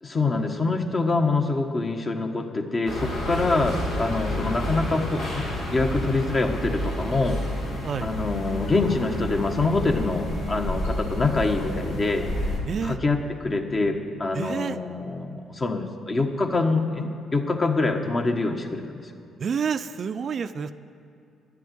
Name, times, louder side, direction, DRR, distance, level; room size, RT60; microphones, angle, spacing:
voice 1, 0.0-7.4 8.0-12.3 12.8-19.1, left 3 dB, 40° left, 4 dB, 1.3 m, -25 dB
sound 1, 2.9-12.6, left 1 dB, 90° left, 3.0 m, -30 dB
voice 2, 12.7-13.0 14.3-14.8 19.4-20.7, right 6 dB, 55° right, 11 dB, 0.4 m, -28 dB
11.0 x 7.6 x 9.2 m, 2.6 s
supercardioid pair, 60°, 0 cm